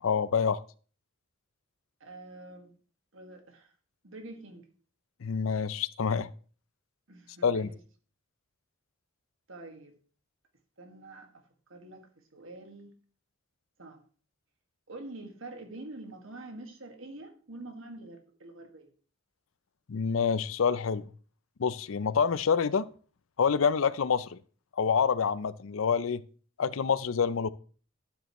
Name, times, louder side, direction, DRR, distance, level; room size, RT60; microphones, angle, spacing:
voice 1, 0.0-0.6 5.2-6.3 7.4-7.7 19.9-21.1 21.6-22.9 23.4-24.4 24.8-26.2 26.6-27.5, left 6 dB, 85° left, 0.5 m, -27 dB
voice 2, 2.0-2.7 3.1-3.7 4.0-4.7 7.1-7.8 9.5-9.9 10.8-11.4 11.7-12.9 13.8-14.0 14.9-18.9, right 2 dB, 75° right, 1.9 m, -46 dB
12.5 x 9.3 x 3.1 m
head